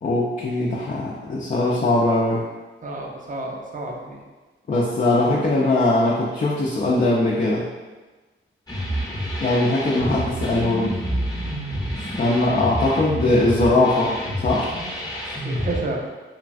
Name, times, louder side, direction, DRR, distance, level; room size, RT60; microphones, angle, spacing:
voice 1, 0.0-2.4 4.7-7.7 9.4-11.0 12.2-14.7, left 2 dB, 40° left, -5 dB, 0.4 m, -20 dB
voice 2, 2.8-4.2 15.3-16.0, right 2 dB, 40° right, -1 dB, 0.5 m, -30 dB
sound 1, 8.7-15.8, equal, 15° left, 0.7 m, -28 dB
3.1 x 2.3 x 2.5 m, 1.2 s
wide cardioid pair, 75°, 21 cm